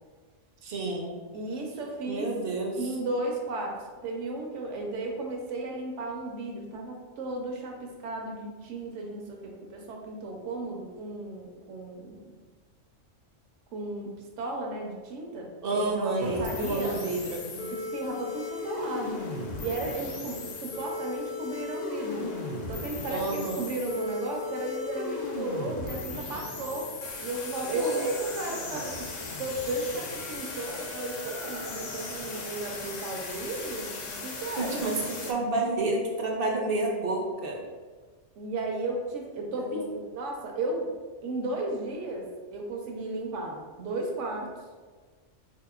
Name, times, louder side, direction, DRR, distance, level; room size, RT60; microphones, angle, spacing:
voice 1, 0.6-1.2 2.1-2.8 15.6-17.4 23.1-23.7 27.8-28.0 34.6-37.6 39.6-39.8, right 2 dB, 60° right, 0 dB, 0.7 m, -29 dB
voice 2, 1.3-2.3 2.8-12.4 13.7-17.0 17.5-19.2 19.6-22.3 22.7-26.9 27.2-28.9 29.4-34.8 38.4-40.9 41.2-44.5, right 2 dB, 75° right, 0 dB, 1.0 m, -34 dB
sound 1, 16.2-35.3, left 3 dB, 85° left, 0.3 m, -37 dB
3.9 x 2.8 x 2.3 m, 1.4 s
omnidirectional pair, 1.3 m